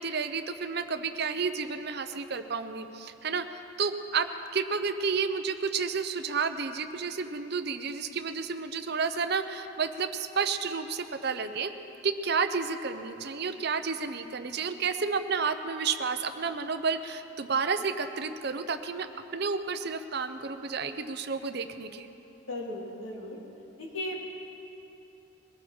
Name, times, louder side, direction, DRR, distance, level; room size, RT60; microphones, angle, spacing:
voice 1, 0.0-4.3 4.5-11.7 12.0-19.1 19.3-22.1, right 5 dB, 55° right, 9 dB, 0.7 m, -31 dB
voice 2, 22.5-23.4 23.8-24.2, left 1 dB, 85° left, -4 dB, 3.1 m, -36 dB
22.0 x 14.5 x 4.4 m, 3.0 s
head